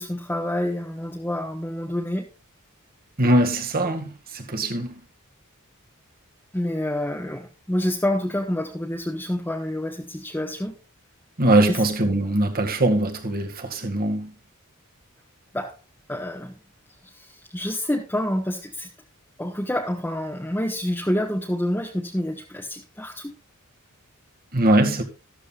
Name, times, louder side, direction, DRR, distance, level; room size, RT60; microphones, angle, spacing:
voice 1, 0.0-2.3 6.5-10.7 11.7-11.8 15.5-15.7 16.1-16.5 17.1-18.9 19.4-23.3, left 1 dB, 10° left, 1.2 m, -28 dB
voice 2, 3.2-5.0 11.4-14.3 24.5-25.0, right 1 dB, 45° right, 2.0 m, -21 dB
13.5 x 13.0 x 2.4 m
head